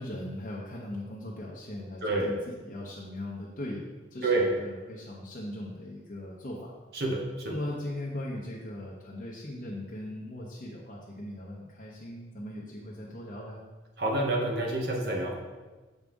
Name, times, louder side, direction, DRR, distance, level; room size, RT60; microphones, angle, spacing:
voice 1, 0.0-2.4 2.6-6.7 7.5-13.6, left 1 dB, 45° left, -4 dB, 0.8 m, -39 dB
voice 2, 2.0-2.3 4.2-4.5 6.9-7.6 14.0-15.4, right 2 dB, 60° right, 0 dB, 0.9 m, -28 dB
7.3 x 5.3 x 3.6 m, 1.3 s
head